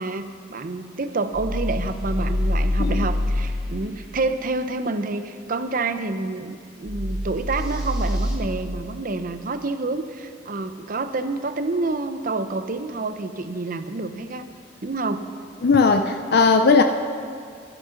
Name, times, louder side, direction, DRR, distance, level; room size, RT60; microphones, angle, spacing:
voice 1, 0.0-14.5 14.8-15.3, right 3 dB, 50° right, 10 dB, 0.7 m, -28 dB
sound 1, 1.3-3.5 6.9-8.4, left 1 dB, 5° right, 2.0 m, -25 dB
voice 2, 15.6-16.8, left 4 dB, 60° left, 6 dB, 0.5 m, -17 dB
12.0 x 11.5 x 5.8 m, 2.2 s
head